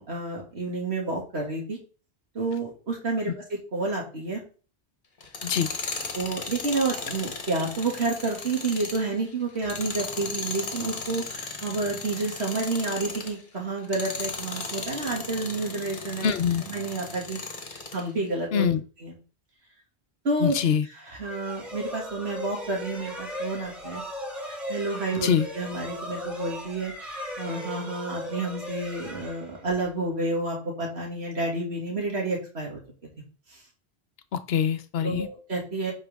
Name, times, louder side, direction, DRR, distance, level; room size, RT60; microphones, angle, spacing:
voice 1, 0.0-1.8 2.3-4.4 6.1-16.3 16.7-17.4 17.9-18.7 19.0-19.1 20.2-20.5 21.1-24.0 24.4-25.3 25.5-32.8 35.0-35.9, right 3 dB, 80° right, -1 dB, 2.6 m, -30 dB
Tools, 5.2-13.4 13.8-18.1, left 4 dB, 50° left, 1.4 m, -36 dB
voice 2, 16.2-16.6 18.5-18.8 20.4-20.9 25.2-25.5 34.3-35.3, left 7 dB, 70° left, 11 dB, 1.0 m, -24 dB
sound 1, 21.2-30.0, equal, 45° right, 4.7 m, -37 dB
8.7 x 5.3 x 3.6 m, 0.37 s
omnidirectional pair, 1.1 m